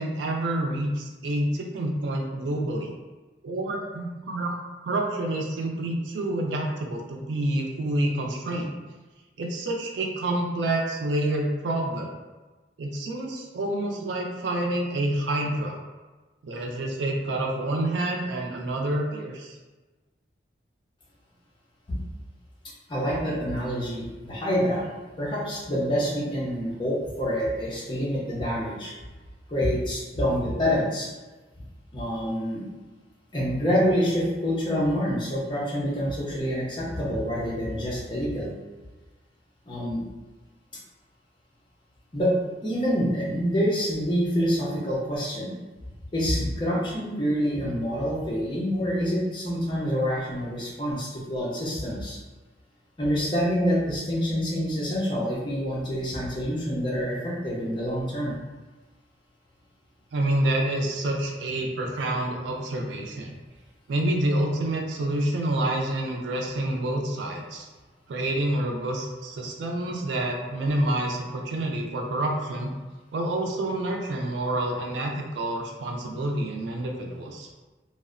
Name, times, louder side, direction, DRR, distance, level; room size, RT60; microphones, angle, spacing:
voice 1, 0.0-2.9 3.4-4.6 4.8-8.7 9.4-12.1 12.8-15.8 16.4-19.6 60.1-63.3 63.9-67.7 68.1-72.7 73.1-77.5, right 1 dB, 85° right, 1 dB, 0.4 m, -28 dB
voice 2, 22.9-24.9 25.2-28.9 29.5-31.1 31.9-32.6 33.3-38.5 39.7-40.0 42.1-42.3 42.6-45.6 46.1-52.2 53.0-58.4, equal, 25° left, -5 dB, 0.6 m, -27 dB
2.7 x 2.1 x 2.4 m, 1.2 s
head